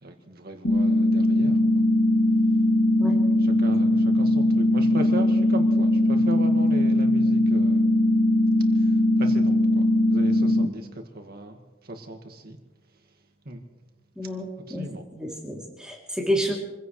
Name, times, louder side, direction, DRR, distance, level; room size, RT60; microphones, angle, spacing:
voice 1, 0.0-1.8 3.4-7.9 8.8-8.9 9.2-10.9 11.1-12.6 13.5-13.6 14.7-15.0, right 1 dB, 50° right, 3 dB, 2.0 m, -37 dB
sound 1, 0.6-10.7, left 1 dB, 55° left, 3.0 m, -20 dB
voice 2, 14.2-14.9 15.1-16.6, equal, 5° right, -2 dB, 3.0 m, -29 dB
27.5 x 16.0 x 3.3 m, 1.1 s
head